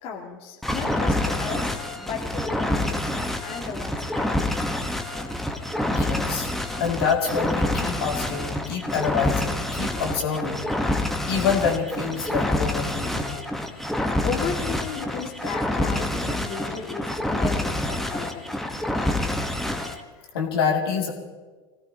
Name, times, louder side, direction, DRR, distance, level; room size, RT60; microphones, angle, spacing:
voice 1, 0.0-4.5 14.2-18.5, left 6 dB, 45° left, -2 dB, 2.3 m, -34 dB
sound 1, 0.6-20.0, left 1 dB, ahead, 1.4 m, -27 dB
voice 2, 5.9-6.5 6.8-10.7 11.3-13.4 20.3-21.1, left 6 dB, 65° left, 0 dB, 2.9 m, -26 dB
25.0 x 17.0 x 3.0 m, 1.3 s
figure-of-eight pair, 85°, 13 cm